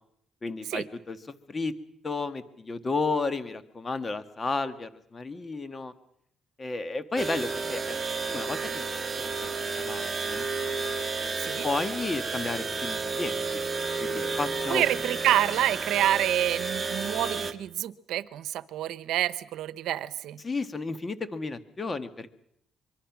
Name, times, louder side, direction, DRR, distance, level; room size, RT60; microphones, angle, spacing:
voice 1, 0.4-1.7 2.0-5.9 6.6-8.0 8.3-9.5 9.8-10.5 11.2-13.6 14.0-14.8 20.4-22.3, left 3 dB, 30° left, 11 dB, 1.5 m, -33 dB
sound 1, 7.2-17.5, right 4 dB, 30° right, 1.6 m, -31 dB
voice 2, 14.7-20.4, right 12 dB, 85° right, 15 dB, 0.9 m, -28 dB
24.5 x 23.5 x 6.1 m, 0.70 s
cardioid pair, 90°, 0 cm